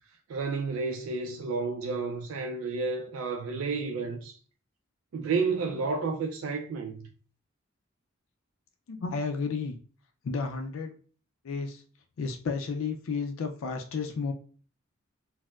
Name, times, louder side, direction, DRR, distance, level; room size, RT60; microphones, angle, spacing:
voice 1, 0.3-4.4 5.1-7.0, right 4 dB, 85° right, 0.4 m, -31 dB
voice 2, 8.9-9.8 10.2-11.0 11.4-11.8 12.2-14.3, left 4 dB, 75° left, 0.4 m, -32 dB
4.2 x 2.0 x 2.3 m
head